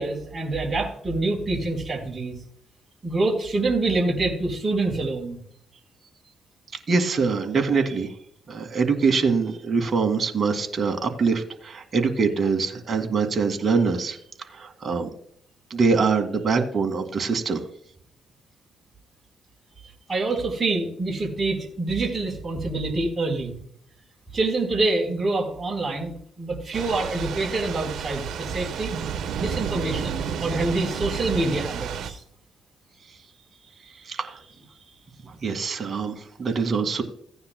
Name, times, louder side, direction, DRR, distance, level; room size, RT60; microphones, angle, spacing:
voice 1, 0.0-2.4 3.0-5.4 20.1-23.6 24.3-28.9 29.4-32.2, right 2 dB, 25° right, -1 dB, 4.0 m, -26 dB
voice 2, 6.9-8.1 8.5-14.2 14.5-15.1 15.7-17.6 34.1-34.4 35.4-37.0, right 4 dB, 40° right, 4 dB, 2.1 m, -24 dB
Thunder / Rain, 26.7-32.1, right 7 dB, 75° right, 1.1 m, -31 dB
16.5 x 9.5 x 2.2 m, 0.65 s
cardioid pair, 90°, 0 cm